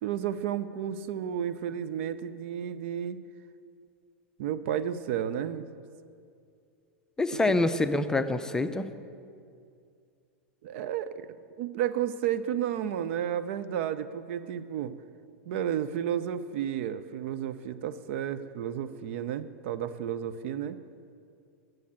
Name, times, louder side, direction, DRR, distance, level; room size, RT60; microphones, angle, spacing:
voice 1, 0.0-3.2 4.4-5.7 7.5-7.6 10.6-14.9 15.5-20.8, right 9 dB, 60° right, 13 dB, 0.6 m, -32 dB
voice 2, 7.2-8.9, left 2 dB, 10° left, 9 dB, 0.6 m, -26 dB
10.5 x 7.7 x 8.8 m, 2.3 s
hypercardioid pair, 100°, 7 cm